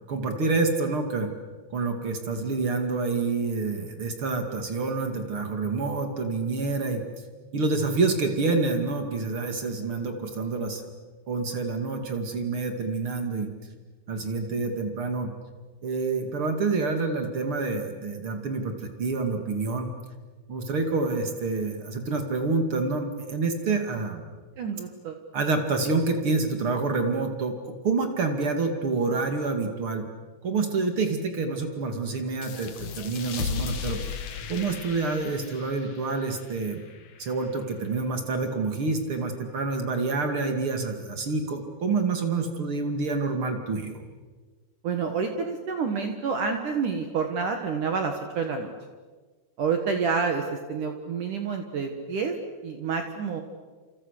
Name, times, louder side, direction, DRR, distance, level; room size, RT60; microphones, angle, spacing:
voice 1, 0.1-1.3 1.7-7.0 7.5-10.8 11.3-13.5 14.1-15.3 15.8-19.9 20.5-24.2 25.3-30.0 30.4-34.0 34.5-36.9 37.2-44.0, right 3 dB, 40° right, 5 dB, 2.1 m, -27 dB
voice 2, 24.6-25.2 44.8-48.7 49.6-50.4 50.7-52.3 52.6-53.4, right 5 dB, 60° right, 5 dB, 2.3 m, -28 dB
sound 1, 32.4-37.6, left 5 dB, 55° left, 2.2 m, -36 dB
29.5 x 28.0 x 6.6 m, 1.4 s
omnidirectional pair, 5.6 m